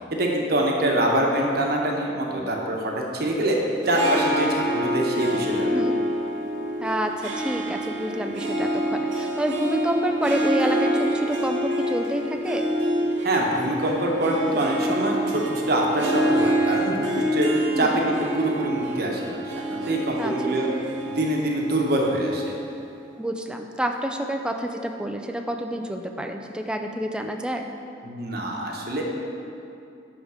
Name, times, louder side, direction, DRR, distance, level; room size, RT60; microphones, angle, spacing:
voice 1, 0.1-3.6 3.9-5.7 13.2-17.5 17.8-20.7 21.1-22.6 28.0-29.0, right 1 dB, 55° right, 0 dB, 1.0 m, -25 dB
Harp, 3.7-23.1, right 1 dB, 90° right, 0.9 m, -27 dB
voice 2, 6.8-12.7 17.8-18.0 20.2-20.6 23.2-27.7, right 1 dB, 5° right, 4 dB, 0.4 m, -28 dB
10.5 x 3.7 x 4.8 m, 2.6 s
head